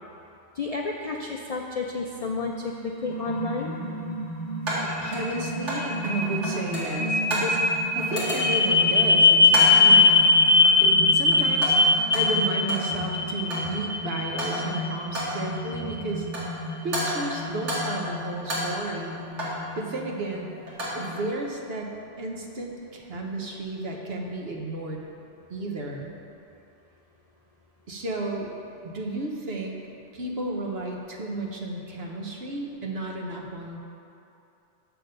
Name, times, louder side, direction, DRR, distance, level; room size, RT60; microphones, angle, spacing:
voice 1, 0.6-3.7, left 4 dB, 55° left, 0 dB, 0.4 m, -31 dB
sound 1, 2.4-20.5, left 3 dB, 25° left, 0.8 m, -23 dB
sound 2, 2.4-2.5 4.7-5.9 6.2-7.6 8.0-8.7 9.5-9.9 10.6-11.0 11.3-12.9 13.2-13.8 14.2-14.8 15.1-15.5 16.1-16.6 16.9-18.1 18.4-19.7 20.5-21.1, equal, 85° right, 2.2 m, -31 dB
voice 2, 5.0-10.2 10.8-11.8 12.1-16.3 16.8-19.2 19.7-20.5 20.9-25.1 25.5-26.1 27.9-28.5 28.8-29.8 30.1-33.8, right 2 dB, 60° right, 0 dB, 1.2 m, -33 dB
6.8 x 6.2 x 6.6 m, 2.8 s
omnidirectional pair, 1.2 m